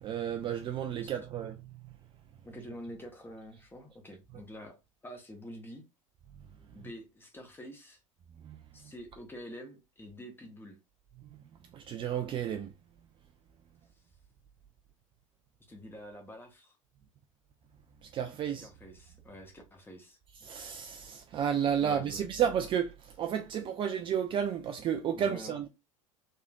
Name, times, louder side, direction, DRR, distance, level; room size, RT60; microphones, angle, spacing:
voice 1, 0.0-1.9 8.4-8.9 11.7-12.7 18.0-18.7 20.4-25.7, right 8 dB, 30° right, 0.4 m, -32 dB
voice 2, 2.4-4.8 5.0-5.8 6.7-8.0 8.7-10.8 15.7-16.8 18.6-20.2 21.8-22.3 25.1-25.6, equal, 10° left, 1.0 m, -47 dB
3.2 x 2.8 x 2.3 m
figure-of-eight pair, 70°, 17 cm